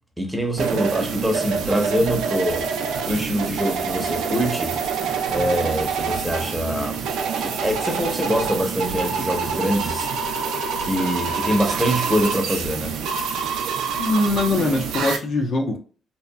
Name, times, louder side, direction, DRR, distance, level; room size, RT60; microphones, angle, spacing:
voice 1, 0.2-2.7 3.1-4.7 5.3-7.0 7.4-10.4 10.8-12.9, equal, 5° right, 0.8 m, -24 dB
sound 1, 0.6-15.2, right 6 dB, 85° right, 0.4 m, -26 dB
voice 2, 14.0-15.8, left 2 dB, 55° left, 0.6 m, -22 dB
2.8 x 2.4 x 2.2 m
cardioid pair, 90°, 0 cm